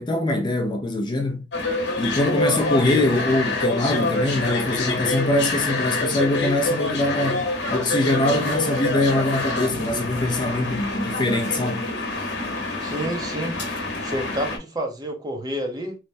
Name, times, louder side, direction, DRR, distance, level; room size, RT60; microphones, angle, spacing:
voice 1, 0.0-1.5 2.0-11.9, left 1 dB, 25° left, 0.5 m, -23 dB
sound 1, 1.5-14.6, left 2 dB, 70° left, 0.9 m, -26 dB
voice 2, 12.8-13.6 14.0-16.0, right 1 dB, 20° right, 0.6 m, -29 dB
3.2 x 2.1 x 2.5 m
head